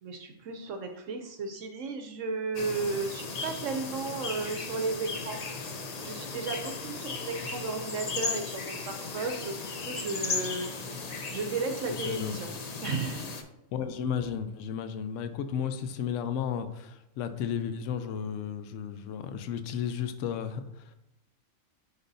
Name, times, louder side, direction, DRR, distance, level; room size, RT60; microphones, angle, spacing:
voice 1, 0.0-12.5 12.8-13.3, right 4 dB, 70° right, 5 dB, 0.9 m, -34 dB
sound 1, 2.5-13.4, left 4 dB, 55° left, 0.4 m, -36 dB
voice 2, 13.7-20.9, left 8 dB, 70° left, 9 dB, 0.9 m, -33 dB
9.9 x 3.6 x 2.7 m, 0.86 s
omnidirectional pair, 1.4 m